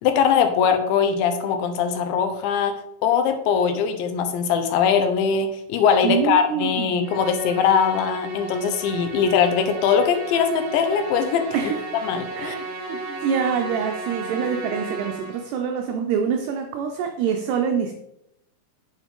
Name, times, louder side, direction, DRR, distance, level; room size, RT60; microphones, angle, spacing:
voice 1, 0.0-2.7 3.0-11.7 12.0-12.6, left 7 dB, 80° left, 3.0 m, -21 dB
voice 2, 6.0-7.1 11.5-11.8 12.4-17.9, right 7 dB, 85° right, 2.3 m, -25 dB
Musical instrument, 7.0-15.6, right 3 dB, 60° right, 1.8 m, -34 dB
8.8 x 7.1 x 3.7 m
omnidirectional pair, 5.5 m